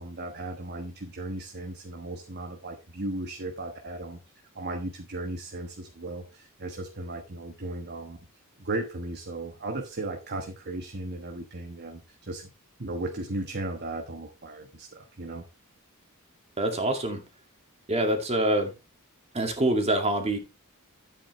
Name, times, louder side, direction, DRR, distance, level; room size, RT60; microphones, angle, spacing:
voice 1, 0.0-4.2 4.5-8.2 8.6-12.5 12.8-15.4, right 2 dB, 50° right, 4 dB, 1.3 m, -36 dB
voice 2, 16.6-17.2 17.9-18.7 19.3-20.4, right 1 dB, 30° right, 4 dB, 2.2 m, -25 dB
10.5 x 8.8 x 3.2 m, 0.27 s
head